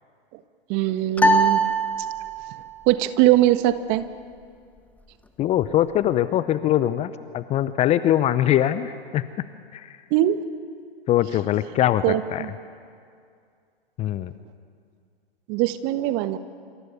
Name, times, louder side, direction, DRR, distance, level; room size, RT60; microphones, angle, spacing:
voice 1, 0.7-1.6 2.9-4.0 10.1-10.4 12.0-12.5 15.5-16.4, right 14 dB, 35° right, 11 dB, 1.4 m, -21 dB
sound 1, 1.2-2.7, right 1 dB, 5° left, 1.4 m, -21 dB
voice 2, 5.4-9.2 9.7-10.0 11.1-12.5 14.0-14.3, left 12 dB, 20° left, 14 dB, 0.7 m, -22 dB
26.5 x 26.5 x 7.0 m, 2.3 s
figure-of-eight pair, 110°, 30 cm